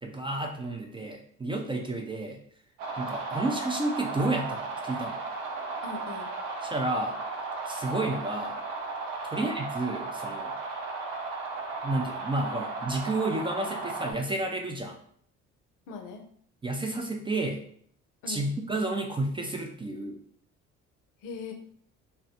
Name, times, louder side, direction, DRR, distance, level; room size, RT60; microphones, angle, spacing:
voice 1, 0.0-2.4 3.0-5.2 6.6-7.2 7.7-8.6 9.2-10.5 11.8-15.0 16.6-17.6 18.3-20.2, right 2 dB, 15° right, 2 dB, 0.3 m, -31 dB
sound 1, 2.8-14.1, right 3 dB, 70° right, 0.6 m, -35 dB
voice 2, 5.8-6.3 9.3-9.6 15.9-16.3 18.2-18.5 21.2-21.5, left 4 dB, 65° left, 4 dB, 0.6 m, -40 dB
2.1 x 2.1 x 2.8 m, 0.62 s
hypercardioid pair, 55°, 35 cm